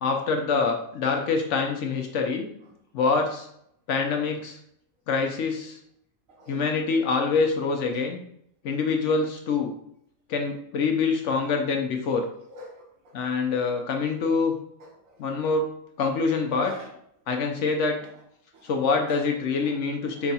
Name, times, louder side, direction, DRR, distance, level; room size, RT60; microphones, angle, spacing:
voice 1, 0.0-2.5 2.9-3.5 3.9-4.6 5.1-5.8 6.5-8.2 8.6-9.7 10.3-12.2 13.1-14.5 15.2-15.7 16.0-16.7 17.3-18.0 18.6-20.3, left 4 dB, 65° left, 3 dB, 0.8 m, -25 dB
voice 2, 6.3-6.6 12.5-13.1 14.8-15.2 16.6-16.9 17.6-17.7 18.0-18.1 18.5-18.8 19.1-19.2 19.6-19.7 20.1-20.3, equal, 70° right, -2 dB, 1.5 m, -45 dB
4.6 x 2.3 x 4.1 m, 0.73 s
omnidirectional pair, 1.5 m